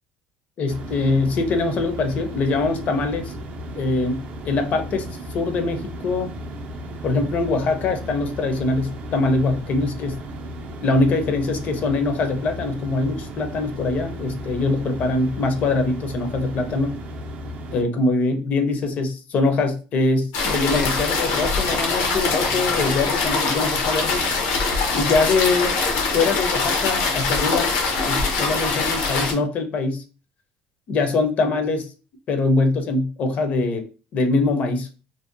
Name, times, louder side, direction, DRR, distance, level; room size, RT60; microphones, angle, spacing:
voice 1, 0.6-3.3 3.7-5.1 5.3-6.3 7.0-10.2 10.8-16.9 17.7-24.2 24.9-25.8 26.1-27.7 28.1-30.0 30.9-31.9 32.3-33.9 34.1-34.9, left 3 dB, 45° left, 6 dB, 0.5 m, -23 dB
sound 1, 0.7-17.8, right 1 dB, 45° right, 0.4 m, -35 dB
sound 2, 20.3-29.3, left 4 dB, 85° left, 0.7 m, -23 dB
2.6 x 2.1 x 2.5 m, 0.34 s
cardioid pair, 135°, 4 cm